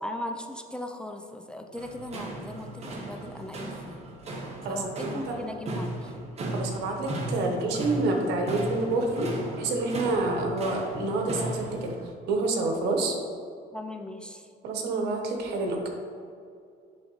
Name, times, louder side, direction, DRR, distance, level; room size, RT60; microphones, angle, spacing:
voice 1, 0.0-4.0 4.7-6.1 13.7-14.5, left 1 dB, 5° left, 4 dB, 0.4 m, -38 dB
sound 1, 1.7-11.9, right 1 dB, 40° right, 1.2 m, -36 dB
voice 2, 4.4-5.4 6.5-13.2 14.6-15.9, right 2 dB, 85° right, 2 dB, 1.2 m, -28 dB
10.5 x 3.8 x 3.2 m, 2.4 s
cardioid pair, 110°, 17 cm